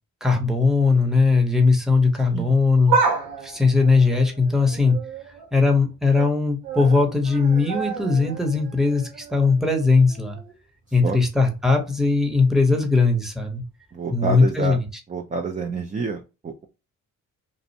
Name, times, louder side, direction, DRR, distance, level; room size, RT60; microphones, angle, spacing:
voice 1, 0.2-2.9 3.4-5.0 5.5-10.4 10.9-13.6 14.1-14.9, left 4 dB, ahead, 2 dB, 0.8 m, -19 dB
sound 1, 2.7-5.5 5.9-6.3 6.6-10.6 10.9-11.0 12.0-12.1, right 5 dB, 90° right, 0.7 m, -30 dB
voice 2, 13.9-14.8 15.1-16.6, right 4 dB, 25° right, 3 dB, 0.4 m, -28 dB
2.5 x 2.0 x 2.7 m, 0.29 s
cardioid pair, 60°, 34 cm